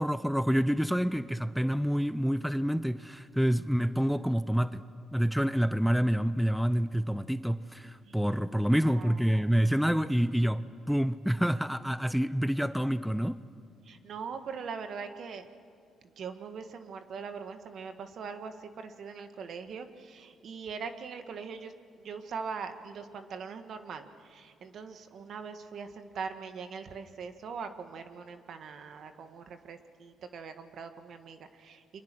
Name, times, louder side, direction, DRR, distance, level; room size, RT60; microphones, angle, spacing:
voice 1, 0.0-4.8 5.1-13.4, equal, ahead, 0.6 m, -27 dB
voice 2, 8.8-9.4 13.8-15.5 16.2-21.7 22.0-31.8, right 5 dB, 65° right, 1.7 m, -41 dB
30.0 x 24.0 x 6.2 m
cardioid pair, 90°, 0 cm